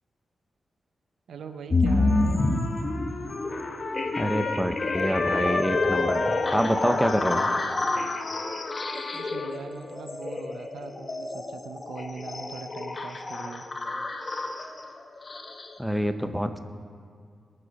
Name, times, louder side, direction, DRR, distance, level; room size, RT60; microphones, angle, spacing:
voice 1, 1.3-2.4 9.1-13.6, right 5 dB, 90° right, 8 dB, 0.8 m, -41 dB
sound 1, 1.7-15.8, left 2 dB, 35° left, 1.0 m, -29 dB
Trumpet, 1.9-9.5, left 3 dB, 55° left, 1.3 m, -33 dB
voice 2, 4.2-7.4 15.8-16.5, equal, ahead, 8 dB, 0.7 m, -26 dB
21.0 x 7.8 x 5.4 m, 2.2 s
wide cardioid pair, 110°, 0 cm